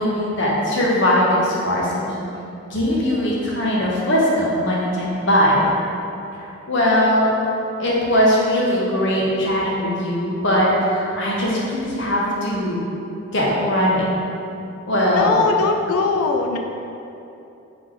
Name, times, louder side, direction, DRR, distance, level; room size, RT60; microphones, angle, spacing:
voice 1, 0.0-2.3 2.7-5.7 6.7-7.3 7.8-12.8 13.3-14.1 14.9-15.3, equal, 55° left, -5 dB, 0.8 m, -20 dB
voice 2, 15.1-16.6, left 4 dB, 85° left, 3 dB, 0.4 m, -20 dB
3.5 x 3.1 x 3.7 m, 2.8 s
head